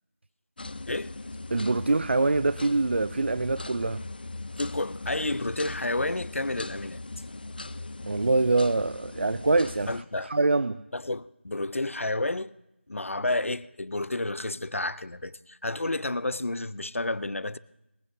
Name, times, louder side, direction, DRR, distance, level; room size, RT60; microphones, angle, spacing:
sound 1, 0.6-10.0, left 2 dB, 45° left, 0.5 m, -40 dB
voice 1, 1.5-4.0 8.0-10.8, right 3 dB, 60° right, 0.4 m, -25 dB
voice 2, 4.6-7.0 9.9-10.3 10.9-12.6 12.9-17.6, left 2 dB, 90° left, 0.6 m, -30 dB
21.5 x 15.5 x 2.7 m
figure-of-eight pair, 170°, 7 cm